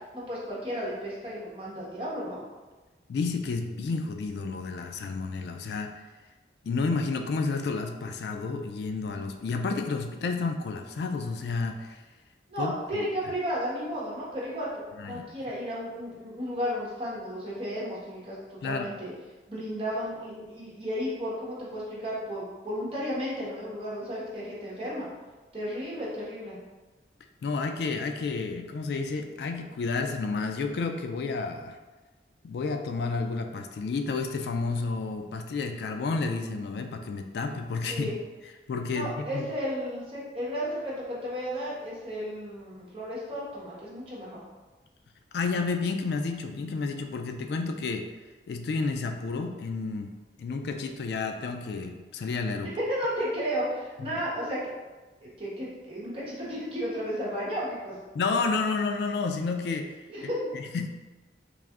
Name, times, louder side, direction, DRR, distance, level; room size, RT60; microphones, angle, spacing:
voice 1, 0.1-2.4 12.5-14.7 15.0-19.1 19.5-25.1 25.5-26.6 37.9-38.2 38.9-44.4 52.6-54.7 55.2-57.9 60.1-60.4, equal, 30° right, -7 dB, 1.1 m, -33 dB
voice 2, 3.1-6.0 6.6-12.0 12.6-13.1 15.0-15.3 18.6-18.9 27.4-31.8 32.4-38.1 38.7-39.5 45.3-48.1 48.5-50.1 50.4-52.7 54.0-54.1 58.1-60.9, left 4 dB, 70° left, 5 dB, 0.3 m, -31 dB
3.4 x 2.5 x 3.5 m, 1.3 s
head